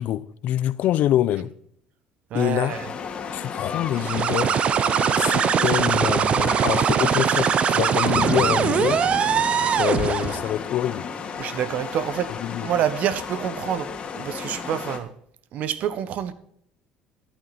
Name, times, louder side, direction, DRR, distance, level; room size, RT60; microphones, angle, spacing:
voice 1, 0.0-1.5 2.3-2.8 3.3-4.6 5.2-9.1 9.7-11.1 12.3-12.7, left 12 dB, 65° left, 0.7 m, -25 dB
voice 2, 2.3-2.9 11.4-12.3 12.6-15.1 15.5-16.3, right 10 dB, 60° right, 1.3 m, -27 dB
sound 1, 2.7-15.0, left 6 dB, 40° left, 2.3 m, -33 dB
sound 2, 3.9-10.5, right 8 dB, 45° right, 0.7 m, -21 dB
sound 3, 8.1-12.0, left 2 dB, 15° left, 2.2 m, -34 dB
12.0 x 11.5 x 4.3 m
supercardioid pair, 100°, 3 cm